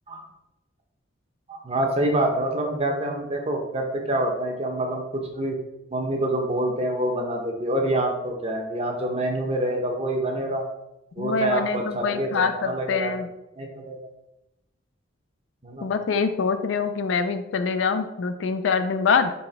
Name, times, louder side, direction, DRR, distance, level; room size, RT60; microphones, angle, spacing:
voice 1, 1.5-5.6 5.9-10.6 11.2-13.1 13.6-14.1 15.6-15.9, right 1 dB, 30° right, 1 dB, 0.7 m, -26 dB
voice 2, 11.2-13.3 15.8-19.3, left 5 dB, 70° left, 9 dB, 0.4 m, -24 dB
4.1 x 3.3 x 3.3 m, 0.90 s
head